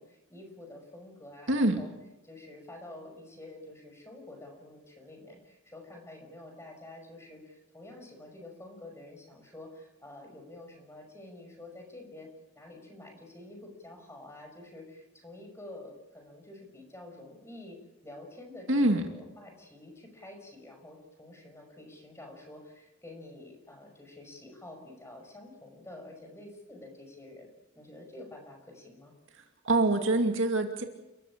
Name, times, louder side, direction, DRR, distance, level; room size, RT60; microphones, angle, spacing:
voice 1, 0.0-1.9 2.2-27.5 27.8-29.1, left 1 dB, 15° left, 3 dB, 5.8 m, -48 dB
voice 2, 1.5-1.8 18.7-19.0 29.4-30.8, right 2 dB, 65° right, 4 dB, 2.5 m, -25 dB
29.5 x 15.0 x 8.7 m, 0.99 s
head